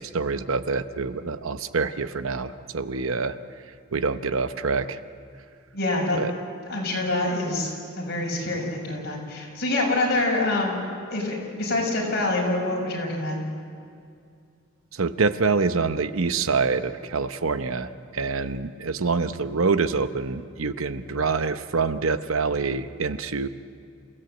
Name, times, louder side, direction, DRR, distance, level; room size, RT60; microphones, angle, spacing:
voice 1, 0.0-3.4 3.9-5.0 6.1-6.3 14.9-23.5, right 4 dB, 80° right, 11 dB, 0.9 m, -26 dB
voice 2, 5.7-6.2 6.7-10.8 11.1-13.4, left 2 dB, 50° left, -2 dB, 6.3 m, -26 dB
28.5 x 16.5 x 7.9 m, 2.4 s
head